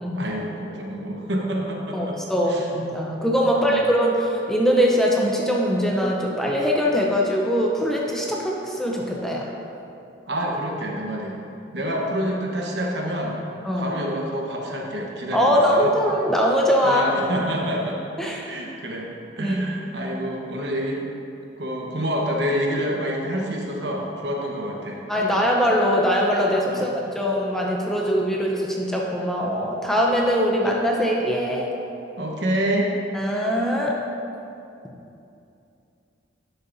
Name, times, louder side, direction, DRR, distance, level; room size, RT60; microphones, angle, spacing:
voice 1, 0.1-2.2 2.5-2.7 3.5-3.8 10.3-11.4 11.7-13.4 13.8-15.9 16.8-19.1 19.4-21.0 21.6-25.5 26.7-26.9 32.2-32.9, equal, 65° right, -1 dB, 1.1 m, -27 dB
voice 2, 1.9-9.5 13.6-13.9 15.3-17.0 18.2-18.5 19.4-19.7 25.1-31.7 33.1-33.9, equal, ahead, -2 dB, 0.7 m, -22 dB
11.5 x 6.8 x 2.7 m, 2.7 s
head